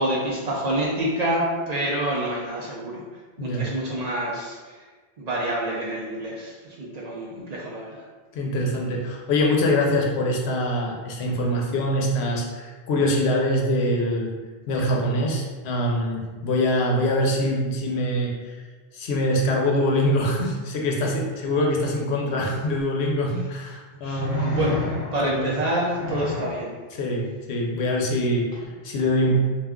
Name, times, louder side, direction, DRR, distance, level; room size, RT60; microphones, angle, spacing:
voice 1, 0.0-3.0 3.4-4.8 5.2-8.0 24.0-24.3 24.5-24.8 25.1-26.7, right 1 dB, 55° right, -3 dB, 0.5 m, -27 dB
voice 2, 8.3-14.3 14.7-18.6 18.9-24.6 25.2-25.5 26.9-29.4, left 1 dB, 80° left, -1 dB, 0.9 m, -24 dB
sound 1, 22.8-22.9 24.2-25.4 25.9-26.6 28.5-28.6, left 3 dB, 40° left, 0.8 m, -29 dB
2.4 x 2.2 x 3.5 m, 1.4 s
omnidirectional pair, 1.1 m